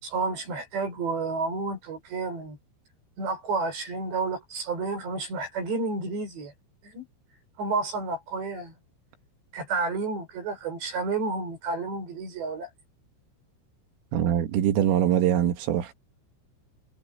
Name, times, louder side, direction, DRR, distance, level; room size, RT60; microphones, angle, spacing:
voice 1, 0.0-2.6 3.2-6.5 6.8-7.1 7.6-8.7 9.5-12.7, right 3 dB, 60° right, 8.0 m, -30 dB
voice 2, 14.1-15.9, right 10 dB, 80° right, 4.5 m, -23 dB
omnidirectional pair, 5.8 m